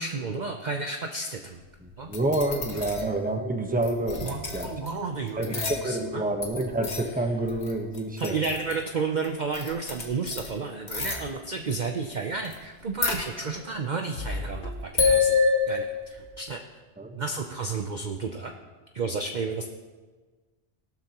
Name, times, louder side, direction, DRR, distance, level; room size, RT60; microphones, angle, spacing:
voice 1, 0.0-1.6 2.0-2.1 2.7-2.8 4.2-6.2 8.2-15.4 15.7-16.6 17.1-18.5 18.9-19.7, right 4 dB, 45° right, 4 dB, 0.7 m, -32 dB
voice 2, 1.8-4.7 5.4-8.4 17.0-17.2, right 1 dB, 5° right, 2 dB, 1.1 m, -28 dB
sound 1, 2.1-3.2 3.8-4.9 5.3-6.2 6.4-8.9 9.2-9.3 9.5-10.5 10.9-11.3 12.4-12.5 12.8-13.8 14.1-16.3, left 5 dB, 65° left, 1.7 m, -28 dB
18.0 x 12.0 x 3.0 m, 1.4 s
omnidirectional pair, 1.2 m